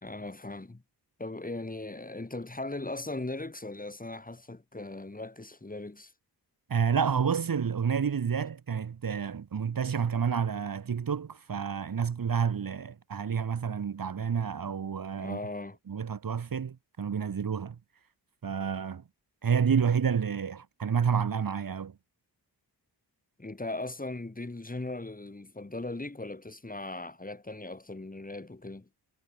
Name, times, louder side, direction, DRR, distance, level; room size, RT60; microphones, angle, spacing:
voice 1, 0.0-0.8 1.2-6.1 15.2-15.8 23.4-28.9, left 2 dB, 20° left, 2.4 m, -38 dB
voice 2, 6.7-15.4 15.9-17.8 18.4-19.0 19.4-22.0, right 7 dB, 50° right, 1.4 m, -29 dB
cardioid pair, 60°, 42 cm